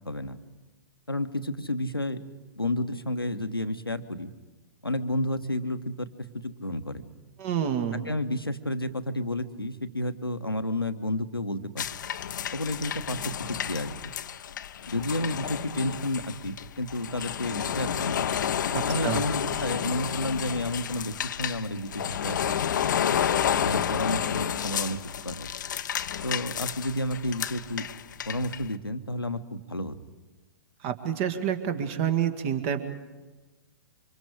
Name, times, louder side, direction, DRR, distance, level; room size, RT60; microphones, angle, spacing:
voice 1, 0.0-0.4 1.1-2.2 2.6-4.3 4.8-6.1 6.4-7.0 7.9-11.8 12.5-14.0 14.9-18.3 18.8-22.7 23.6-25.0 25.2-25.5 26.2-27.9 28.3-29.9, left 1 dB, 90° left, 10 dB, 1.3 m, -31 dB
voice 2, 7.4-8.0 18.7-19.2 30.8-32.8, right 9 dB, 40° right, 8 dB, 2.1 m, -28 dB
sound 1, 11.8-28.7, left 9 dB, 55° left, 0.8 m, -31 dB
28.0 x 25.5 x 5.1 m, 1.2 s
figure-of-eight pair, 110°, 12 cm